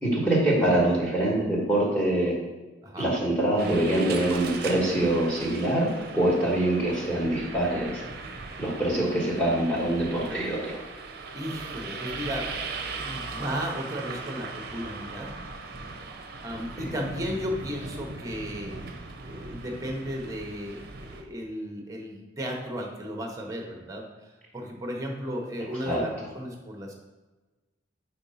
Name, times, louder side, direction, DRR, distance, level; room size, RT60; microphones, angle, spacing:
voice 1, 0.0-2.3 3.0-8.0 8.6-10.8 16.8-16.9 25.8-26.0, right 1 dB, 10° left, -5 dB, 1.3 m, -24 dB
voice 2, 2.8-3.1 11.3-12.5 12.9-15.3 16.4-18.8 19.2-26.9, equal, 20° right, 1 dB, 0.9 m, -34 dB
sound 1, 3.6-21.2, right 4 dB, 55° right, 0.6 m, -39 dB
4.7 x 4.3 x 5.5 m, 1.2 s
head